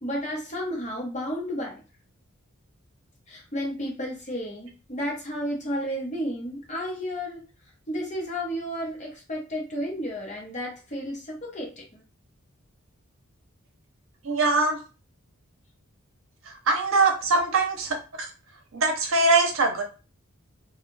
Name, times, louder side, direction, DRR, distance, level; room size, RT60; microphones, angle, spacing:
voice 1, 0.0-1.8 3.3-7.4 7.9-12.0, equal, 35° left, -2 dB, 1.0 m, -32 dB
voice 2, 14.2-14.8 16.7-18.0 18.7-19.8, right 3 dB, 65° right, 3 dB, 0.7 m, -22 dB
2.4 x 2.3 x 3.1 m, 0.33 s
head